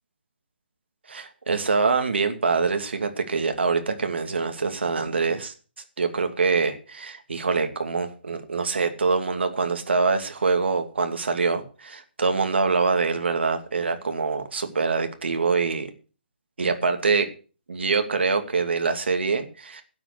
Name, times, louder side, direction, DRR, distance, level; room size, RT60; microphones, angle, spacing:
voice 1, 1.1-5.5 6.0-15.9 16.6-17.3 17.7-19.8, right 4 dB, 75° right, 6 dB, 2.5 m, -24 dB
12.0 x 8.6 x 6.7 m, 0.37 s
hypercardioid pair, 180°, 6 cm